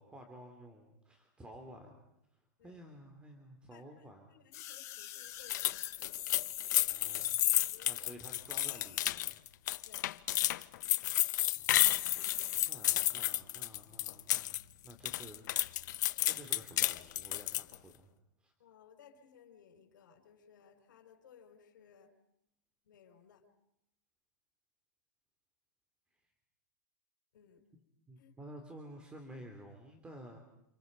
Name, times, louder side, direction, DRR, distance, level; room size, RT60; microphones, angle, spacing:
voice 1, 0.0-2.0 2.3-4.3 6.9-7.4 7.8-9.4 11.6-11.9 12.6-15.5 16.2-18.1 18.4-18.5 28.1-30.4, right 1 dB, 10° right, 4 dB, 3.3 m, -52 dB
voice 2, 3.7-6.2 7.6-7.9 9.8-10.1 16.1-16.3 18.6-22.2 22.9-23.5 27.3-27.6 28.2-28.3, left 7 dB, 85° left, 6 dB, 5.8 m, -61 dB
sound 1, 4.5-7.8 8.5-9.3 9.7-9.8 10.0-10.1 10.5-10.9 11.4-11.6 11.9-12.7 13.4-13.5, left 12 dB, 35° left, 3.2 m, -44 dB
sound 2, 5.5-14.6 14.9-17.7, left 14 dB, 70° left, 0.8 m, -31 dB
30.0 x 27.5 x 5.4 m, 0.80 s
supercardioid pair, 145°, 10 cm